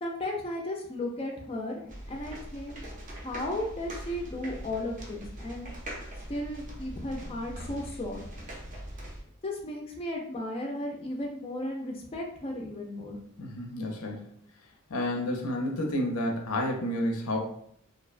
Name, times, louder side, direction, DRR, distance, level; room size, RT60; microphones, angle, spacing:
voice 1, 0.0-2.8 3.2-5.7 6.3-8.2 9.4-13.2, left 1 dB, 25° left, 0 dB, 0.3 m, -35 dB
sound 1, 1.9-9.2, equal, 35° right, 0.5 m, -42 dB
voice 2, 13.4-14.3 14.9-17.4, left 1 dB, 90° left, 2 dB, 0.5 m, -30 dB
2.6 x 2.0 x 2.4 m, 0.68 s
head